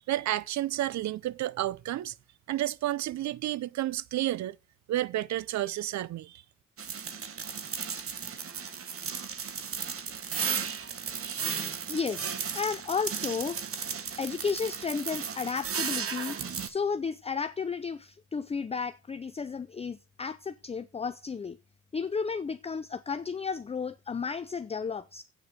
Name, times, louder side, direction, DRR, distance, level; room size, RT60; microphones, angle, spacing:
voice 1, 0.1-2.1 2.5-4.6 4.9-6.4, right 14 dB, 65° right, 0.6 m, -31 dB
sound 1, 6.8-16.7, right 6 dB, 50° right, 1.5 m, -35 dB
voice 2, 11.9-13.6 14.2-16.4 16.6-21.6 21.9-25.2, left 5 dB, 20° left, 0.5 m, -33 dB
8.6 x 8.1 x 5.1 m
cardioid pair, 90°, 30 cm